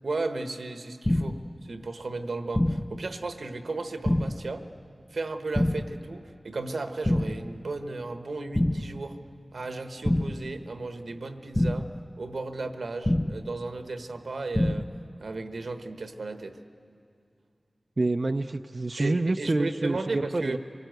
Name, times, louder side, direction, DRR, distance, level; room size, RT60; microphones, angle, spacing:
voice 1, 0.0-4.6 5.1-9.2 9.5-14.9 15.2-16.6 19.0-20.6, right 3 dB, 85° right, 7 dB, 1.1 m, -35 dB
sound 1, 1.0-1.5 2.5-3.0 4.0-4.5 5.5-6.0 7.0-7.5 8.5-9.0 10.0-10.5 11.5-12.0 13.0-13.5 14.5-15.0, left 1 dB, 20° left, 0.5 m, -26 dB
voice 2, 18.0-20.6, right 2 dB, 50° right, 6 dB, 0.5 m, -27 dB
26.5 x 19.0 x 7.9 m, 2.4 s
wide cardioid pair, 55°, 0 cm